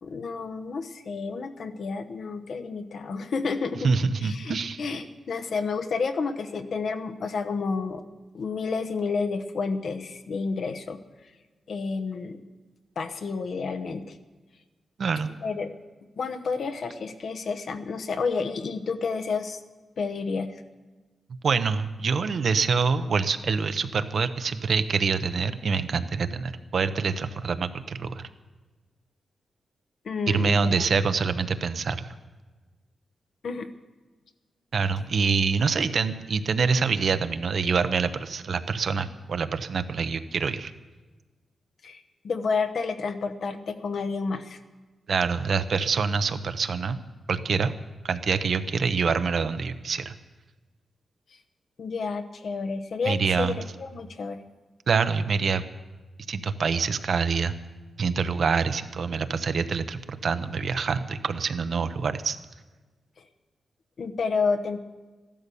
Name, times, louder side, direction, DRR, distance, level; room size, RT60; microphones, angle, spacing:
voice 1, 0.0-3.9 4.2-8.0 8.3-11.0 11.7-12.4 13.0-14.2 15.4-15.7 16.2-19.6 20.0-20.6 30.0-30.8 33.4-33.7 41.8-44.6 51.8-54.4 64.0-64.8, left 4 dB, 55° left, 8 dB, 1.0 m, -30 dB
voice 2, 3.8-4.8 15.0-15.3 21.4-28.3 30.3-32.1 34.7-40.7 45.1-47.0 47.3-47.7 48.0-50.1 53.1-53.5 54.9-55.6 56.3-57.5 58.0-62.4, right 5 dB, 55° right, 10 dB, 0.8 m, -26 dB
14.5 x 12.5 x 6.9 m, 1.3 s
wide cardioid pair, 155°, 0 cm